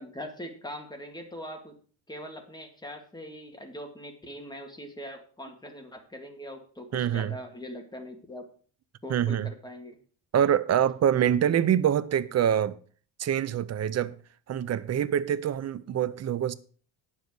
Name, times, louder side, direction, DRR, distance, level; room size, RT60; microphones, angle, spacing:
voice 1, 0.0-1.8 2.1-8.5 9.0-10.0, equal, 10° left, 2.0 m, -41 dB
voice 2, 6.9-7.3 9.1-9.5 10.3-12.8 13.2-14.2 14.5-16.5, right 9 dB, 35° right, 0.5 m, -25 dB
9.1 x 7.4 x 6.2 m
cardioid pair, 145°, 49 cm